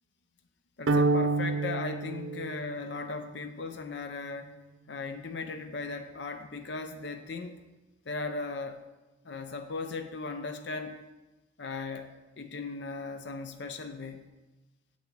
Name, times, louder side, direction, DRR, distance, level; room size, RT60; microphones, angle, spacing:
voice 1, 0.8-4.6 4.9-7.6 8.1-8.8 9.2-11.0 11.6-14.3, left 3 dB, 60° left, 7 dB, 0.6 m, -37 dB
sound 1, 0.9-3.2, right 3 dB, 90° right, 0.6 m, -28 dB
7.9 x 7.0 x 5.9 m, 1.1 s
head